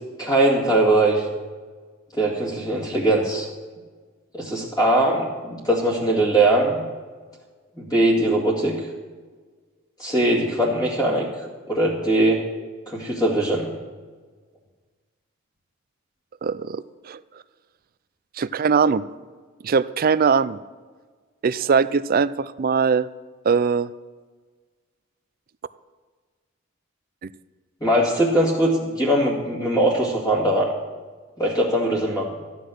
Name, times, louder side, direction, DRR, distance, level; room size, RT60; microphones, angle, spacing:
voice 1, 0.2-1.3 2.1-3.5 4.3-6.8 7.8-8.7 10.0-11.3 11.7-12.4 12.9-13.7 27.8-30.7 31.4-32.3, right 1 dB, 20° left, -5 dB, 2.2 m, -21 dB
voice 2, 16.4-17.2 18.4-19.0 19.6-20.6 21.4-23.1 23.4-23.9, right 5 dB, 45° right, 16 dB, 0.4 m, -21 dB
14.0 x 9.8 x 6.4 m, 1.4 s
head